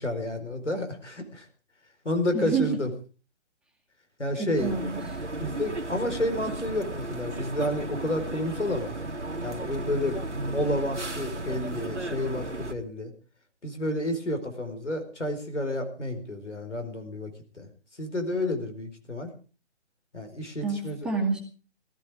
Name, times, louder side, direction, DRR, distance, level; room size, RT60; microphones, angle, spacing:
voice 1, 0.0-1.4 2.0-2.9 4.2-4.7 5.4-8.9 9.4-13.1 13.6-17.7 18.0-19.3 20.1-21.1, left 1 dB, 85° left, 7 dB, 4.6 m, -30 dB
voice 2, 2.3-2.8 4.4-5.2 20.6-21.4, right 4 dB, ahead, -2 dB, 2.0 m, -28 dB
sound 1, 4.6-12.7, right 2 dB, 90° right, 1.9 m, -35 dB
18.0 x 13.5 x 5.0 m, 0.38 s
figure-of-eight pair, 140°, 35 cm